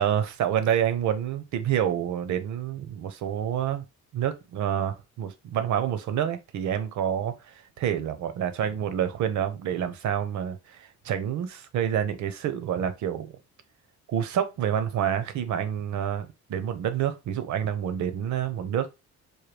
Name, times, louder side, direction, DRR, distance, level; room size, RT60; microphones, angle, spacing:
voice 1, 0.0-3.8 4.1-13.3 14.1-18.9, right 9 dB, 70° right, 0.8 m, -28 dB
4.7 x 2.2 x 3.3 m
cardioid pair, 90°, 30 cm